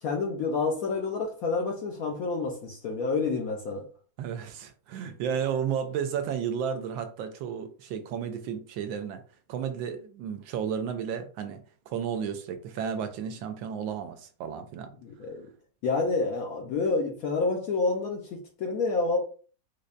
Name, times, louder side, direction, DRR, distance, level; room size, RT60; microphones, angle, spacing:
voice 1, 0.0-3.9 15.0-15.4 15.8-19.2, left 3 dB, 70° left, 0.9 m, -28 dB
voice 2, 4.2-9.2 9.5-11.6 11.9-14.9, right 7 dB, 85° right, 1.3 m, -33 dB
5.2 x 2.1 x 2.4 m
omnidirectional pair, 2.1 m